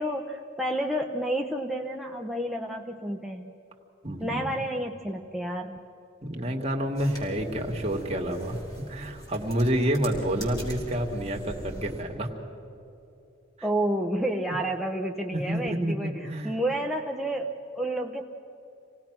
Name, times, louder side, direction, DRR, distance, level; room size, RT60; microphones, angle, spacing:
voice 1, 0.0-3.5 4.2-5.8 13.6-18.2, right 1 dB, ahead, 0 dB, 0.7 m, -30 dB
voice 2, 4.0-4.5 6.2-8.6 8.9-12.3 13.6-13.7 15.3-16.5, right 1 dB, 30° right, 1 dB, 2.0 m, -29 dB
sound 1, 6.9-12.0, right 1 dB, 20° left, 4.6 m, -42 dB
27.0 x 18.5 x 6.0 m, 2.9 s
head